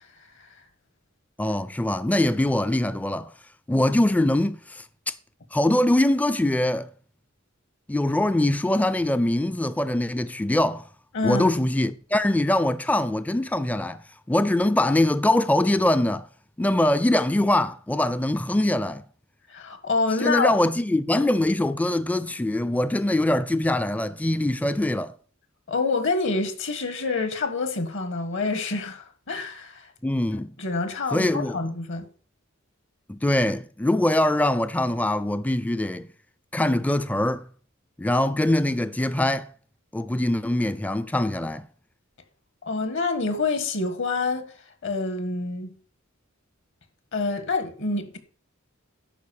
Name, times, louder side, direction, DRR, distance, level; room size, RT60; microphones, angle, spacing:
voice 1, 1.4-3.3 3.7-5.1 5.5-6.9 7.9-10.8 11.2-14.0 14.3-16.3 16.6-19.0 20.2-25.1 30.0-30.6 31.1-31.6 33.1-36.1 36.5-37.4 38.0-39.5 39.9-41.7, left 1 dB, 5° left, 0.4 m, -23 dB
voice 2, 11.1-11.5 19.5-20.5 25.7-29.9 30.6-32.0 42.7-44.5 44.8-45.7 47.1-48.2, left 3 dB, 65° left, 1.5 m, -27 dB
11.0 x 4.6 x 7.0 m
head